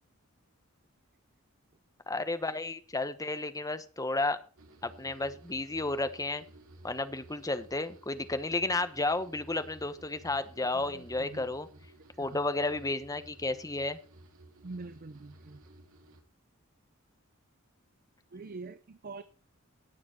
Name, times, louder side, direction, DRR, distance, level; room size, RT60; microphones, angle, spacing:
voice 1, 2.1-4.4 4.8-6.4 6.8-11.7 12.2-14.0, left 2 dB, 15° left, 1.0 m, -32 dB
sound 1, 4.6-16.2, right 1 dB, 85° right, 2.2 m, -55 dB
voice 2, 10.7-11.5 12.0-12.5 14.6-15.6 18.3-19.2, right 3 dB, 45° right, 0.6 m, -45 dB
18.0 x 7.1 x 4.4 m
head